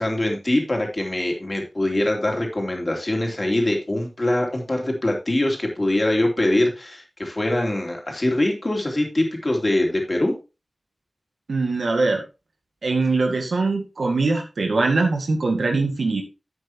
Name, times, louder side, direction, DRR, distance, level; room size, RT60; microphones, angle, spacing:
voice 1, 0.0-10.3, left 1 dB, 35° left, 1 dB, 2.9 m, -23 dB
voice 2, 11.5-12.2 12.8-16.2, right 3 dB, 85° right, 2 dB, 1.8 m, -22 dB
10.5 x 8.0 x 2.9 m, 0.28 s
wide cardioid pair, 75°, 0 cm